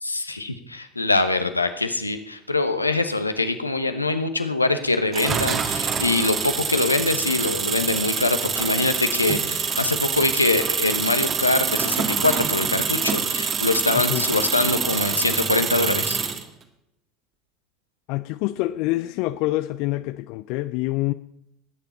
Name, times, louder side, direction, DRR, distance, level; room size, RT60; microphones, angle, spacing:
voice 1, 0.0-16.2, left 2 dB, 90° left, 9 dB, 1.0 m, -23 dB
sound 1, 5.1-16.4, right 6 dB, 35° right, 1.7 m, -25 dB
voice 2, 18.1-21.1, left 18 dB, 55° left, 14 dB, 0.4 m, -26 dB
20.5 x 9.1 x 4.4 m, 0.78 s
figure-of-eight pair, 70°, 0 cm